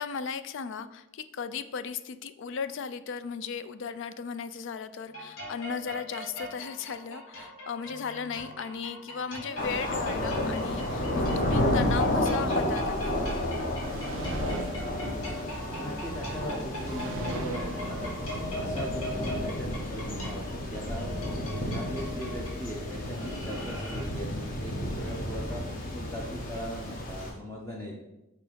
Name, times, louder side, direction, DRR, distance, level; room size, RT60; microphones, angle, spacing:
voice 1, 0.0-13.6, left 6 dB, 55° left, 12 dB, 0.3 m, -36 dB
sound 1, 5.1-24.0, left 1 dB, 70° left, 1.9 m, -41 dB
sound 2, 9.6-27.3, left 1 dB, 40° left, 1.0 m, -31 dB
sound 3, 13.8-16.0 16.8-19.0, right 5 dB, 60° right, 0.3 m, -42 dB
voice 2, 15.8-18.1 18.5-21.1 21.5-28.0, equal, 10° left, -2 dB, 0.6 m, -39 dB
5.8 x 3.8 x 5.1 m, 0.97 s
head